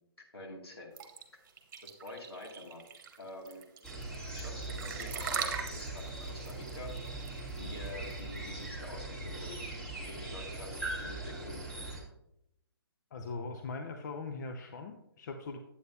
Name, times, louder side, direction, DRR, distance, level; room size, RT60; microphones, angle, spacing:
voice 1, 0.3-0.9 2.0-2.8 3.2-3.6 4.3-6.9 7.5-9.6 10.0-11.6, left 2 dB, 75° left, -1 dB, 2.3 m, -47 dB
sound 1, 1.0-8.6, right 6 dB, 45° right, 1.1 m, -40 dB
sound 2, 3.8-12.0, right 2 dB, 5° left, 1.7 m, -40 dB
voice 2, 13.1-15.6, left 3 dB, 45° left, 5 dB, 0.7 m, -40 dB
9.1 x 8.3 x 2.7 m, 0.82 s
figure-of-eight pair, 135°, 13 cm